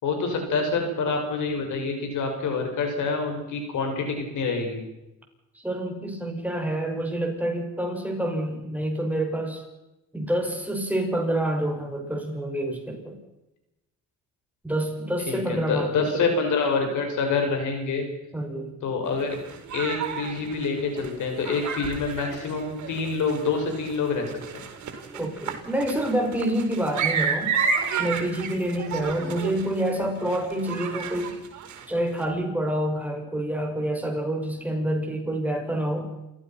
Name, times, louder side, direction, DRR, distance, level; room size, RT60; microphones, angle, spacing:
voice 1, 0.0-4.8 15.3-18.1 18.8-19.4 19.7-24.3, left 4 dB, 80° left, 4 dB, 6.3 m, -26 dB
voice 2, 5.5-9.6 10.1-13.2 14.6-16.4 18.3-18.7 25.1-27.6 28.0-31.4 31.9-36.1, right 1 dB, 5° right, 2 dB, 6.4 m, -27 dB
sound 1, 19.0-32.2, right 6 dB, 70° right, 4.4 m, -32 dB
28.5 x 15.5 x 6.0 m, 0.95 s
cardioid pair, 90°, 30 cm